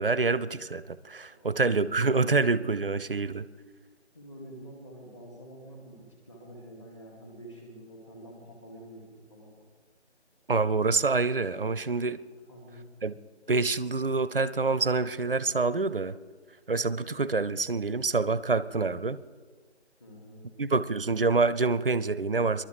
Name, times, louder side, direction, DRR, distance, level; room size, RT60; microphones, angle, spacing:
voice 1, 0.0-3.5 10.5-12.2 13.0-13.1 13.5-16.1 16.7-19.2 20.6-22.7, right 3 dB, 50° right, 16 dB, 0.6 m, -26 dB
voice 2, 1.3-1.7 4.1-9.7 12.5-12.9 20.0-20.6, right 1 dB, 25° left, -1 dB, 2.4 m, -48 dB
27.5 x 12.0 x 3.3 m, 1.5 s
figure-of-eight pair, 160°, 35 cm